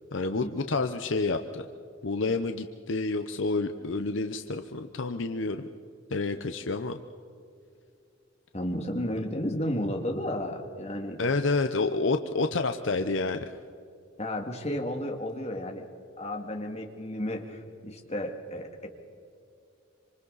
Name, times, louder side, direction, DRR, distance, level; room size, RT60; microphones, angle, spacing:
voice 1, 0.1-1.6 2.0-5.7 6.1-7.0 11.2-13.5, left 3 dB, 65° left, 7 dB, 0.8 m, -29 dB
voice 2, 8.5-11.2 14.2-15.9 16.2-18.9, left 1 dB, 30° left, 2 dB, 2.2 m, -33 dB
26.5 x 26.0 x 4.1 m, 2.5 s
head